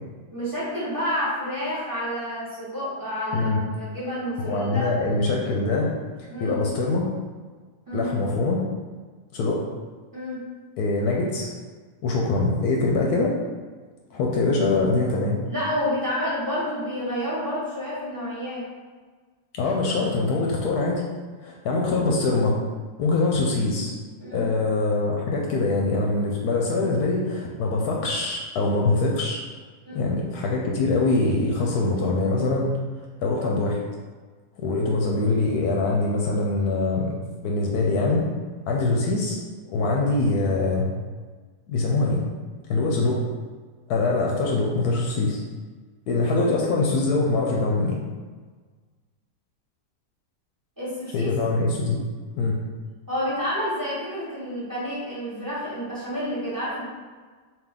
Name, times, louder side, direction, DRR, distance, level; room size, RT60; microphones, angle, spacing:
voice 1, 0.3-4.9 6.3-6.6 7.9-8.1 10.1-10.4 15.5-18.7 24.2-24.5 29.8-30.0 50.8-51.3 53.1-56.9, equal, 15° right, -9 dB, 1.2 m, -29 dB
voice 2, 4.4-5.9 6.2-7.1 7.9-8.6 9.3-9.6 10.8-11.5 12.0-13.3 14.1-15.4 19.5-21.0 21.4-22.6 23.0-23.9 24.3-29.4 29.9-32.8 33.2-33.8 34.6-37.1 37.4-38.2 38.7-39.4 39.7-40.9 41.7-42.2 42.7-43.2 43.9-45.4 46.1-48.0 51.1-52.0 52.4-52.6 55.3-55.4, left 3 dB, 75° left, -1 dB, 1.0 m, -23 dB
3.5 x 2.7 x 3.6 m, 1.4 s
omnidirectional pair, 1.8 m